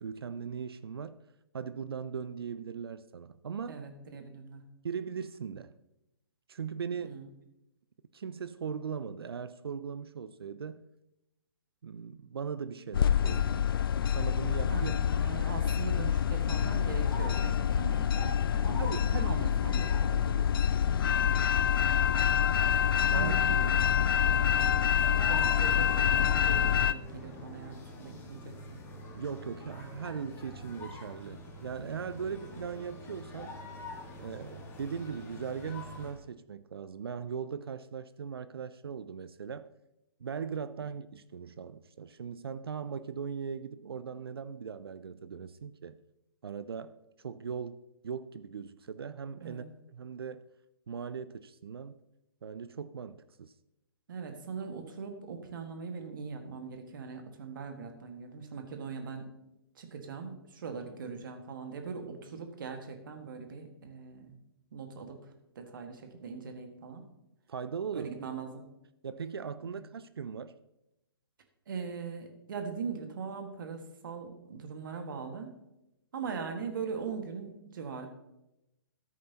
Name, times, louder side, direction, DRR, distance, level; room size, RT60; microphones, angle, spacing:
voice 1, 0.0-1.2 1.5-3.8 4.8-5.7 6.5-7.2 8.1-10.8 11.8-13.8 14.2-14.9 18.8-19.4 19.7-20.6 23.1-23.4 29.1-33.6 34.2-39.7 40.2-46.0 46.4-50.5 50.9-52.0 52.4-53.5 67.5-68.1 69.0-70.5, right 6 dB, 70° right, 0.5 m, -39 dB
voice 2, 3.7-4.6 6.9-7.3 14.7-18.8 19.2-19.9 20.8-21.2 23.1-28.8 40.8-40.9 49.4-49.6 54.1-59.3 59.8-64.4 64.7-67.0 67.9-68.6 69.7-69.8 71.7-75.5 76.1-78.1, right 5 dB, 55° right, 1.8 m, -41 dB
sound 1, 12.9-26.9, left 9 dB, 60° left, 0.4 m, -27 dB
sound 2, 16.5-36.2, left 1 dB, 20° left, 1.6 m, -46 dB
14.0 x 8.4 x 2.9 m
figure-of-eight pair, 125°, 13 cm